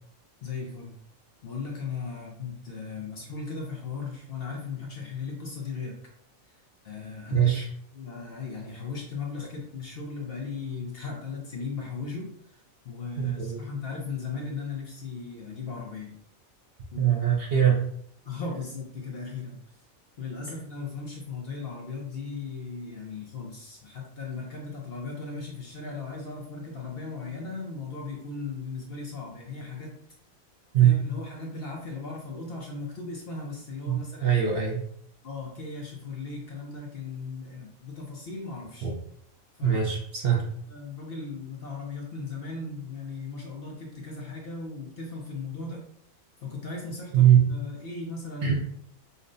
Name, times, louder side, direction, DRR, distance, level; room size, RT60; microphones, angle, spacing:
voice 1, 0.4-1.0 1.4-6.0 6.4-7.5 7.9-16.2 16.9-17.1 18.2-19.6 20.2-29.9 30.8-34.4 35.2-38.9 39.5-39.8 40.7-45.8 46.4-48.5, left 4 dB, 55° left, -1 dB, 0.7 m, -37 dB
voice 2, 7.3-7.6 13.2-13.6 17.0-17.8 30.7-31.0 33.9-34.8 38.8-38.9 39.6-40.4 47.1-47.4 48.4-48.5, right 10 dB, 55° right, -2 dB, 0.7 m, -22 dB
5.3 x 2.1 x 2.5 m, 0.70 s
omnidirectional pair, 1.4 m